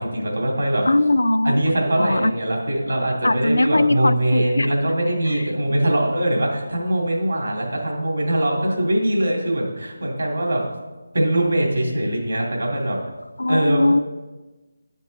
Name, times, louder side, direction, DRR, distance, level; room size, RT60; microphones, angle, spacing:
voice 1, 0.0-0.8 1.4-10.6 11.1-13.0 13.5-13.8, right 1 dB, 75° right, -2 dB, 2.4 m, -22 dB
voice 2, 0.9-1.6 2.0-2.3 3.2-4.7 13.4-14.0, left 2 dB, 85° left, 13 dB, 0.3 m, -19 dB
8.9 x 5.3 x 3.9 m, 1.2 s
figure-of-eight pair, 165°, 0 cm